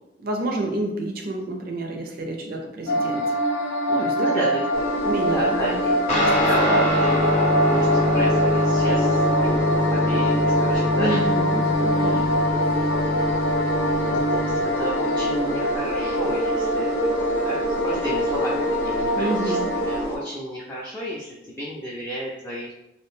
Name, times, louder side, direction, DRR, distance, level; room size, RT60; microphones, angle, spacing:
voice 1, 0.2-3.2 3.9-4.2 5.0-5.8 6.2-6.8 10.9-12.3 19.1-19.7, right 2 dB, 50° right, 2 dB, 0.5 m, -29 dB
sound 1, 2.9-20.0, equal, 75° left, 0.4 m, -24 dB
voice 2, 4.2-4.9 5.3-11.3 11.9-12.4 14.1-22.7, equal, 10° left, -6 dB, 0.4 m, -32 dB
sound 2, 4.7-20.2, right 2 dB, 90° right, 0.8 m, -32 dB
Guitar, 6.1-15.8, left 1 dB, 35° left, 0.7 m, -24 dB
2.6 x 2.1 x 3.0 m, 0.85 s
head